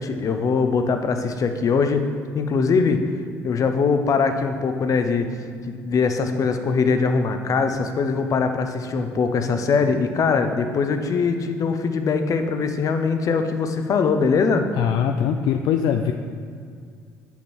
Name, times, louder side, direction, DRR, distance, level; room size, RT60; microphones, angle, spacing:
voice 1, 0.0-2.1 2.3-3.0 3.4-5.3 5.7-14.7, left 5 dB, 50° left, 7 dB, 0.8 m, -22 dB
voice 2, 14.8-16.1, left 8 dB, 70° left, 6 dB, 0.4 m, -22 dB
7.9 x 5.8 x 4.5 m, 2.2 s
supercardioid pair, 70°, 7 cm